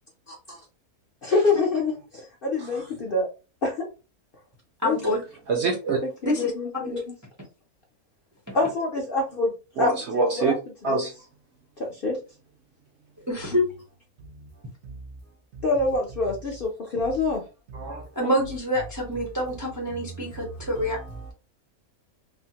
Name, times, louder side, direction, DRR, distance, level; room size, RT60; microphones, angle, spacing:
voice 1, 0.3-0.6 1.2-3.3 3.6-3.9 4.8-5.2 6.2-7.2 8.5-10.5 10.9-11.0 11.8-12.2 15.6-17.4, left 3 dB, 55° left, -1 dB, 0.6 m, -26 dB
voice 2, 4.8-5.2 6.2-6.5 6.8-6.9 13.3-13.6 18.2-21.0, equal, 25° right, -1 dB, 0.4 m, -26 dB
voice 3, 5.5-6.0 9.8-10.5 10.8-11.1 14.8-15.0 15.5-15.6 17.7-18.1 19.9-20.9, right 4 dB, 65° right, 2 dB, 0.7 m, -27 dB
3.3 x 2.1 x 2.8 m, 0.31 s
omnidirectional pair, 1.6 m